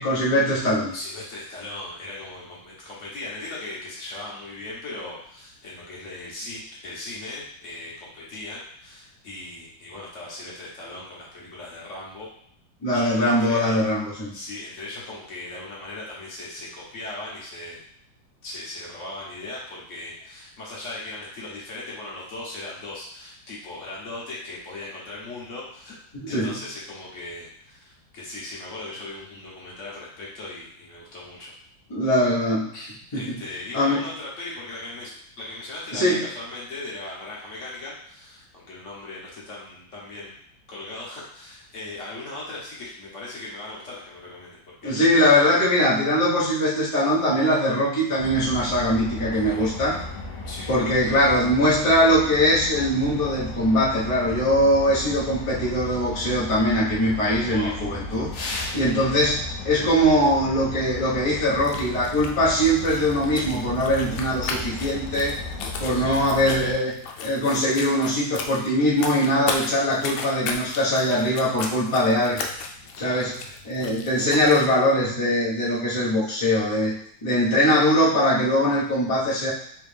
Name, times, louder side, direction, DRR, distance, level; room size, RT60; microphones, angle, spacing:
voice 1, 0.0-0.9 12.8-14.3 26.1-26.5 31.9-32.7 33.1-33.3 33.7-34.0 35.9-36.2 44.8-50.0 50.7-58.3 58.7-65.3 65.8-66.9 67.2-72.5 73.0-73.4 73.6-76.9 77.2-79.5, equal, 25° left, -9 dB, 0.7 m, -21 dB
voice 2, 0.9-12.3 12.9-13.8 14.3-17.8 18.4-25.9 26.3-31.5 32.7-35.1 35.4-40.3 40.7-44.9 47.1-47.2 49.3-50.0 50.4-50.7 57.4-57.8 58.7-59.1 65.9-66.3 73.0-73.4, left 2 dB, 45° left, -5 dB, 1.3 m, -38 dB
sound 1, 48.2-66.7, left 2 dB, 65° left, 1.1 m, -35 dB
sound 2, 61.5-74.7, left 4 dB, 90° left, 1.4 m, -36 dB
3.5 x 3.1 x 3.3 m, 0.64 s
omnidirectional pair, 2.1 m